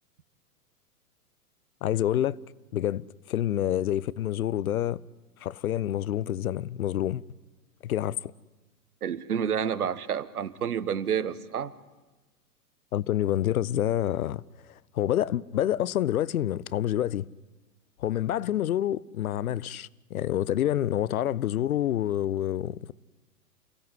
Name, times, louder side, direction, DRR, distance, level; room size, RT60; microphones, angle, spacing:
voice 1, 1.8-2.4 2.7-5.0 5.4-7.2 7.8-8.3 12.9-14.4 14.9-17.3 18.0-22.9, left 12 dB, 70° left, 0.7 m, -27 dB
voice 2, 9.0-11.7, right 8 dB, 75° right, 1.4 m, -29 dB
28.5 x 16.5 x 9.7 m
figure-of-eight pair, 110°, 45 cm